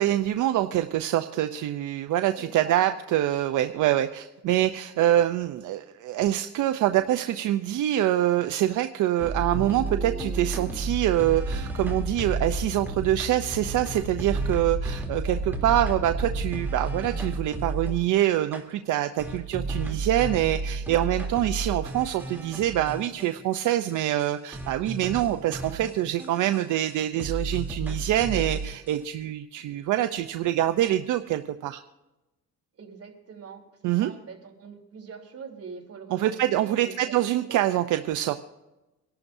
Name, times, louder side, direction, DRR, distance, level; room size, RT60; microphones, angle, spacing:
voice 1, 0.0-31.8 33.8-34.1 36.1-38.4, right 13 dB, 80° right, 8 dB, 0.6 m, -25 dB
voice 2, 2.4-2.8 15.2-15.4 32.8-37.2 37.5-37.6, right 6 dB, 50° right, 1 dB, 3.3 m, -43 dB
sound 1, 9.2-18.1 18.5-18.6 19.2-23.6 23.9-24.0 24.2-24.3 24.5-26.9 27.2-28.9, right 2 dB, 5° right, 3.0 m, -32 dB
26.0 x 11.5 x 2.7 m, 1.0 s
cardioid pair, 90°, 30 cm